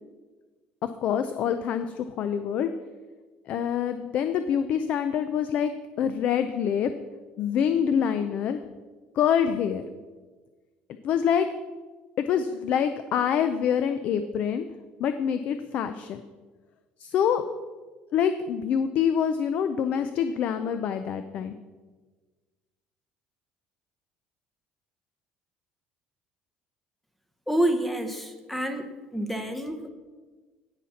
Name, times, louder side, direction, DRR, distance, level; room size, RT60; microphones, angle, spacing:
voice 1, 1.0-2.7 3.5-5.7 6.0-6.9 7.4-8.6 9.2-9.9 11.0-11.5 12.3-14.7 15.0-16.2 17.0-17.4 18.1-21.6, left 8 dB, 50° left, 10 dB, 0.4 m, -26 dB
voice 2, 27.5-29.9, right 1 dB, 5° left, 7 dB, 0.7 m, -28 dB
17.0 x 5.8 x 4.1 m, 1.3 s
cardioid pair, 155°, 3 cm